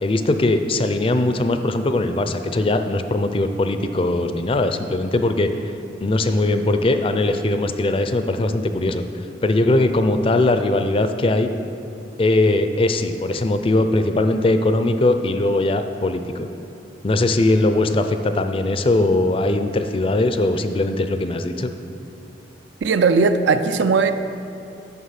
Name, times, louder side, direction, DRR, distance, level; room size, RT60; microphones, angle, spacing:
voice 1, 0.0-5.7 6.0-9.0 9.4-11.5 12.2-16.5 17.0-21.7, left 2 dB, 30° left, 8 dB, 0.4 m, -20 dB
voice 2, 22.8-24.1, right 4 dB, 75° right, 9 dB, 0.4 m, -17 dB
9.5 x 6.0 x 5.8 m, 2.7 s
head